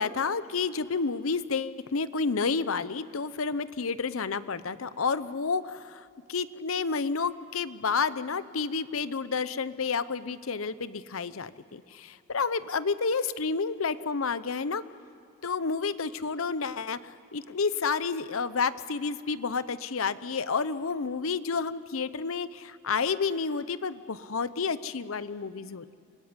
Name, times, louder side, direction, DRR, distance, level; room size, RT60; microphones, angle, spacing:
voice 1, 0.0-14.8 15.4-17.0 17.3-25.9, left 5 dB, 80° left, 15 dB, 0.8 m, -30 dB
26.0 x 19.5 x 9.7 m, 2.6 s
head